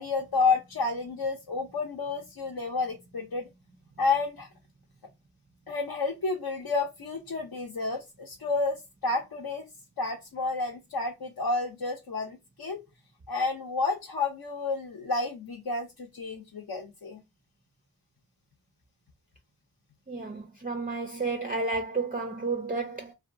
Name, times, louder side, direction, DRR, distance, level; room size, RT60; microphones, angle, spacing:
voice 1, 0.0-3.5 4.0-4.5 5.7-9.6 10.0-12.8 13.3-17.2, left 3 dB, 70° left, 0.6 m, -30 dB
voice 2, 20.1-23.1, right 3 dB, 25° right, 0.4 m, -31 dB
2.7 x 2.2 x 2.5 m
wide cardioid pair, 40°, 38 cm